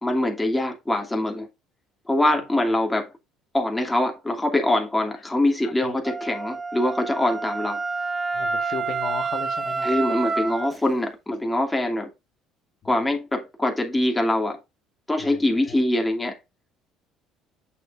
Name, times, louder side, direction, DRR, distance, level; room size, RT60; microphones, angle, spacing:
voice 1, 0.0-1.5 2.1-3.1 3.5-7.8 9.8-12.1 12.8-14.6 15.1-16.4, left 1 dB, 10° left, 2.6 m, -23 dB
Wind instrument woodwind instrument, 6.0-10.7, right 4 dB, 25° right, 1.0 m, -28 dB
voice 2, 8.3-9.9 15.2-15.4 15.6-15.8, left 7 dB, 50° left, 1.5 m, -35 dB
8.1 x 6.5 x 2.6 m
supercardioid pair, 95°, 0 cm